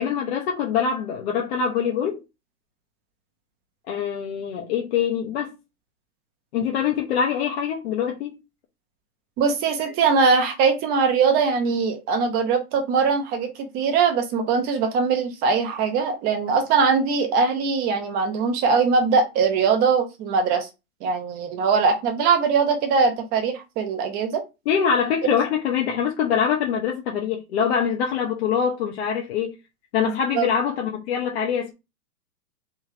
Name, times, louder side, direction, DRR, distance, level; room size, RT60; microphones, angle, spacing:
voice 1, 0.0-2.2 3.9-5.6 6.5-8.4 24.7-29.6 29.9-31.7, left 7 dB, 45° left, 0.9 m, -24 dB
voice 2, 9.4-20.7 21.0-24.4 25.2-25.4 30.0-30.5, right 5 dB, 20° right, 0.8 m, -21 dB
3.5 x 3.5 x 3.2 m
hypercardioid pair, 145°, 44 cm